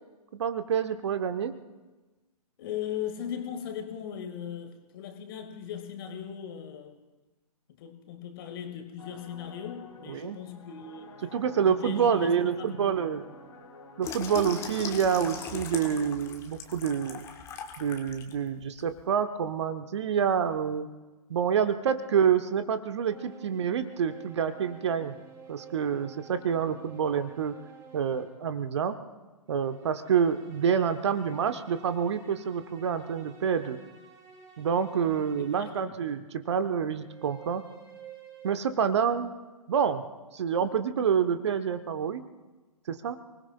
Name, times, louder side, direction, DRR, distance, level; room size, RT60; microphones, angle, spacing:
voice 1, 0.3-1.5 10.1-10.4 11.3-13.2 14.0-17.2 17.8-20.9 21.3-25.1 25.5-27.5 27.9-29.0 29.5-33.8 34.6-37.6 38.4-39.3 39.7-40.0 40.3-42.2 42.9-43.2, right 7 dB, 45° right, 10 dB, 0.9 m, -27 dB
voice 2, 2.6-7.0 7.8-11.2 11.6-13.0 35.6-36.0, left 9 dB, 35° left, 7 dB, 1.8 m, -38 dB
sound 1, 9.0-16.1, left 2 dB, 55° left, 3.4 m, -50 dB
Water tap faucet / Sink (filling or washing), 14.0-18.3 18.8-19.0, left 6 dB, 15° left, 1.3 m, -39 dB
sound 2, 23.1-28.5 29.5-36.0 37.0-38.6, right 7 dB, 15° right, 3.6 m, -51 dB
29.5 x 20.0 x 2.3 m, 1.2 s
figure-of-eight pair, 125°, 20 cm